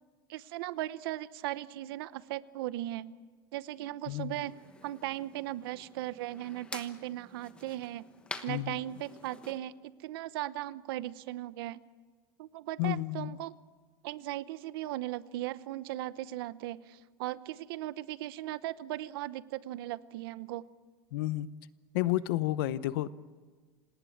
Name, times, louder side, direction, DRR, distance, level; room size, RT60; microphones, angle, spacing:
voice 1, 0.3-3.1 3.5-4.5 4.8-8.1 8.4-9.7 10.0-11.8 12.4-13.5 14.0-20.7, right 15 dB, 65° right, 16 dB, 0.9 m, -37 dB
voice 2, 4.1-4.5 8.5-8.9 12.8-13.4 21.1-21.5 21.9-23.1, left 15 dB, 65° left, 16 dB, 0.9 m, -31 dB
sound 1, 4.4-9.6, left 3 dB, 10° left, 1.1 m, -48 dB
27.5 x 19.0 x 8.6 m, 1.5 s
supercardioid pair, 180°, 13 cm